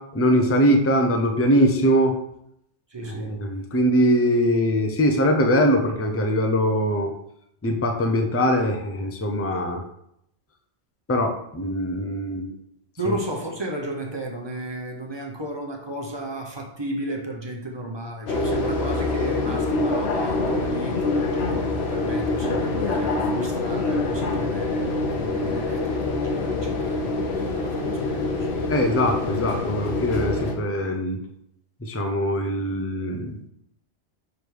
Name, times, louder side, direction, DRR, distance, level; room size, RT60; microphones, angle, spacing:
voice 1, 0.1-2.1 3.0-7.1 7.6-9.8 11.1-12.5 13.1-13.2 28.7-31.2 31.8-33.4, equal, 15° left, 3 dB, 0.5 m, -22 dB
voice 2, 2.9-3.4 13.0-28.5, right 1 dB, 25° right, 0 dB, 0.9 m, -34 dB
sound 1, 18.3-30.5, left 3 dB, 75° left, 1.1 m, -25 dB
6.5 x 3.4 x 4.6 m, 0.77 s
omnidirectional pair, 1.1 m